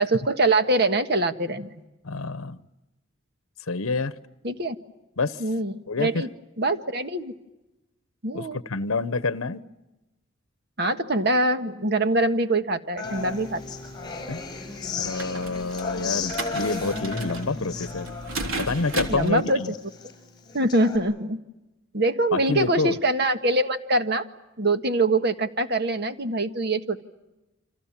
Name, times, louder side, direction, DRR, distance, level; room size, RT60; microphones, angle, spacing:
voice 1, 0.0-1.8 4.4-4.7 5.4-6.3 6.6-7.3 8.2-8.6 10.8-13.6 19.1-19.6 20.5-21.4 21.9-24.3 24.6-27.0, right 2 dB, 50° right, 9 dB, 1.6 m, -24 dB
voice 2, 2.0-2.6 3.7-4.1 5.2-5.4 5.9-6.3 8.3-9.6 14.3-14.4 15.0-18.1 18.6-19.7 22.3-22.9, left 3 dB, 80° left, 15 dB, 0.9 m, -27 dB
Human voice / Acoustic guitar, 13.0-21.0, left 4 dB, 20° left, 6.3 m, -34 dB
sound 1, 13.1-19.3, right 2 dB, 80° right, 3.6 m, -36 dB
29.0 x 26.5 x 7.3 m, 1.0 s
head